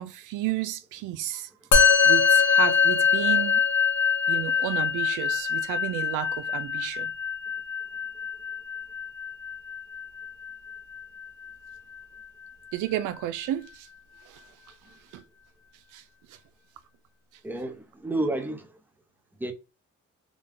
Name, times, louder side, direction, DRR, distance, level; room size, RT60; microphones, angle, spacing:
voice 1, 0.0-1.5 2.0-3.6 4.3-7.1 12.7-13.9 14.3-14.4 15.1-15.2 15.9-16.0, right 13 dB, 85° right, 0.5 m, -32 dB
Musical instrument, 1.7-11.3, left 6 dB, 75° left, 1.1 m, -24 dB
voice 2, 17.4-18.7 19.4-19.5, right 2 dB, 5° right, 0.8 m, -30 dB
3.6 x 2.2 x 3.6 m
cardioid pair, 90°, 30 cm